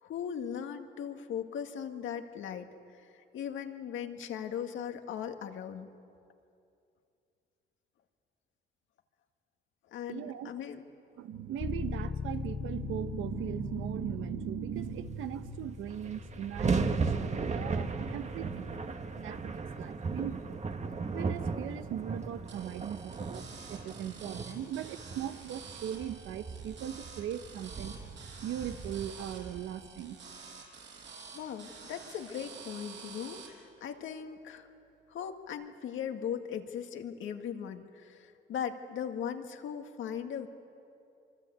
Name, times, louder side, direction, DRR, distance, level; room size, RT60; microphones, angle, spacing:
voice 1, 0.0-5.9 9.9-10.8 31.3-34.7 35.1-40.5, left 8 dB, 75° left, 5 dB, 2.0 m, -39 dB
voice 2, 10.1-10.5 11.2-18.8 19.2-20.6 21.1-27.9 28.4-30.2, right 10 dB, 85° right, 10 dB, 1.2 m, -39 dB
sound 1, 11.6-19.3, left 5 dB, 30° left, 0.8 m, -41 dB
sound 2, 15.4-15.5 15.7-30.0, right 4 dB, 35° right, 1.6 m, -36 dB
sound 3, 22.5-33.5, right 5 dB, 65° right, 7.0 m, -49 dB
25.0 x 25.0 x 8.3 m, 2.5 s
cardioid pair, 90°, 20 cm